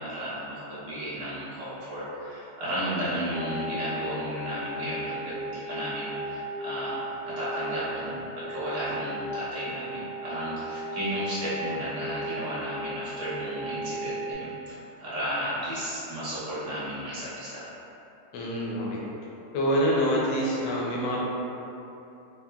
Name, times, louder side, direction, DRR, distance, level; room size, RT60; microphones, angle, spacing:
voice 1, 0.0-17.7, equal, 45° right, -12 dB, 0.4 m, -34 dB
sound 1, 3.3-14.3, right 1 dB, 75° right, 1.2 m, -36 dB
voice 2, 18.3-19.0 19.5-21.2, equal, 75° left, -4 dB, 1.2 m, -26 dB
3.7 x 2.0 x 2.2 m, 2.9 s
omnidirectional pair, 1.9 m